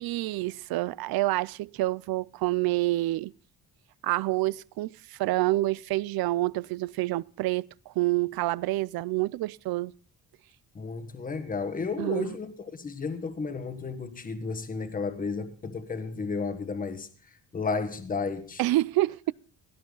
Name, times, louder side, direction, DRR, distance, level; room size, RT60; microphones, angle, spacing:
voice 1, 0.0-3.3 4.0-9.9 12.0-12.3 18.6-19.3, right 18 dB, 85° right, 0.5 m, -28 dB
voice 2, 10.7-17.1 17.5-18.6, left 4 dB, 25° left, 1.3 m, -33 dB
17.0 x 11.0 x 3.9 m
cardioid pair, 160°, 36 cm